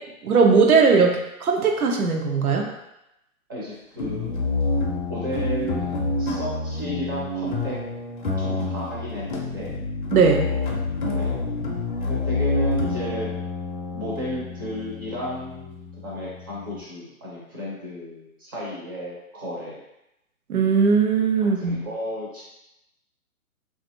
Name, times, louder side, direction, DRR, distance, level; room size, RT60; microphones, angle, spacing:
voice 1, 0.2-2.7 10.1-10.6 20.5-21.8, right 5 dB, 80° right, 2 dB, 0.7 m, -19 dB
voice 2, 3.5-4.3 5.1-7.8 8.4-9.8 11.1-11.3 12.1-13.3 13.9-15.8 16.0-19.8 21.6-22.4, equal, 15° right, -7 dB, 0.4 m, -33 dB
sound 1, 4.0-16.8, left 3 dB, 40° left, 0.4 m, -28 dB
3.0 x 2.5 x 2.5 m, 0.87 s
hypercardioid pair, 140°, 43 cm